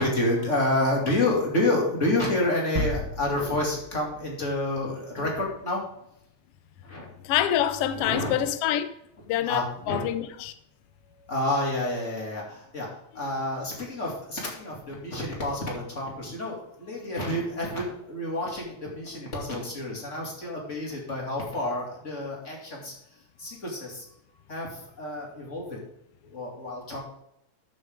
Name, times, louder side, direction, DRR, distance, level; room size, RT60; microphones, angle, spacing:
voice 1, 0.0-5.8 6.8-7.1 7.9-8.5 9.5-10.1 11.2-12.9 13.1-22.9 23.4-24.1 24.5-25.8 26.2-27.0, left 1 dB, 25° left, 2.5 m, -29 dB
sound 1, 2.8-5.4, equal, 45° right, 1.0 m, -34 dB
voice 2, 7.2-8.9 9.3-10.5, left 11 dB, 85° left, 1.3 m, -26 dB
13.0 x 6.6 x 3.6 m
omnidirectional pair, 3.6 m